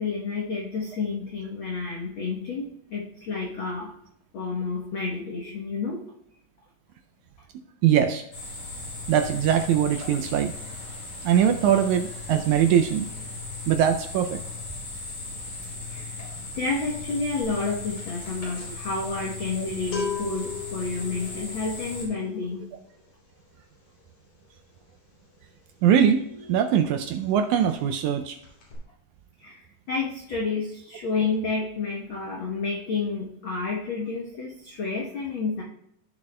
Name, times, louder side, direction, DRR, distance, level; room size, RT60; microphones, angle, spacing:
voice 1, 0.0-3.9 4.3-6.0 15.9-16.2 16.6-22.7 29.4-35.6, left 4 dB, 65° left, -2 dB, 1.2 m, -30 dB
voice 2, 7.8-8.2 9.1-10.5 11.2-13.1 13.7-14.4 19.6-19.7 25.8-28.4, right 9 dB, 80° right, 6 dB, 1.7 m, -22 dB
sound 1, 8.3-22.1, left 3 dB, 45° left, 4.2 m, -37 dB
sound 2, 17.4-17.7 17.9-26.5 26.8-27.0 27.3-28.1 28.4-28.7, left 5 dB, 85° left, 4.5 m, -38 dB
15.5 x 7.0 x 2.2 m, 0.75 s
omnidirectional pair, 3.7 m